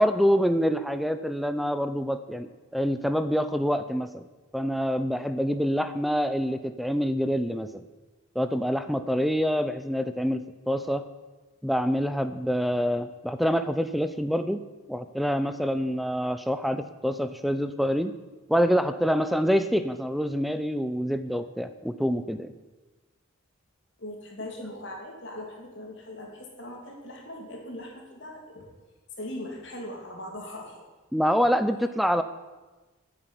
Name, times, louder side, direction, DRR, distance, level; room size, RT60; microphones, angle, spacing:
voice 1, 0.0-4.3 4.5-7.8 8.3-11.0 11.6-14.6 14.9-18.1 18.5-22.5 31.1-32.2, equal, ahead, 10 dB, 0.5 m, -26 dB
voice 2, 24.0-28.7 29.2-30.8, left 1 dB, 55° left, 0 dB, 3.1 m, -40 dB
10.5 x 8.0 x 9.6 m, 1.2 s
head